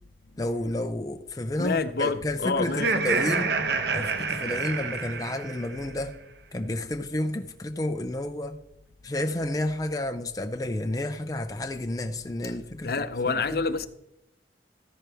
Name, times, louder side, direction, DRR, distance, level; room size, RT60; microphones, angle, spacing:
voice 1, 0.4-3.6 3.9-6.1 6.5-8.6 9.0-12.9 13.3-13.6, left 1 dB, 20° left, 0.5 m, -30 dB
voice 2, 1.6-2.9 12.8-13.9, left 4 dB, 55° left, 0.7 m, -27 dB
Laughter, 2.6-5.9, right 4 dB, 65° right, 0.9 m, -28 dB
13.5 x 10.5 x 3.5 m
head